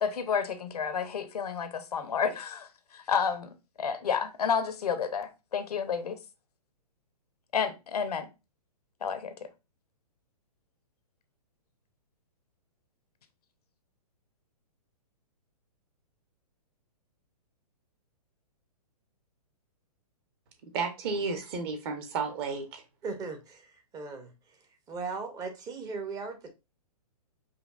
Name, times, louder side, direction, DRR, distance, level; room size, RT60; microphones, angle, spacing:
voice 1, 0.0-6.2 7.5-8.3 9.0-9.3, left 6 dB, 75° left, 0.7 m, -30 dB
voice 2, 20.6-22.8, right 4 dB, 40° right, 0.9 m, -32 dB
voice 3, 23.0-24.3 24.9-26.5, right 4 dB, 20° right, 0.6 m, -38 dB
5.0 x 2.3 x 2.4 m
hypercardioid pair, 125°, 20 cm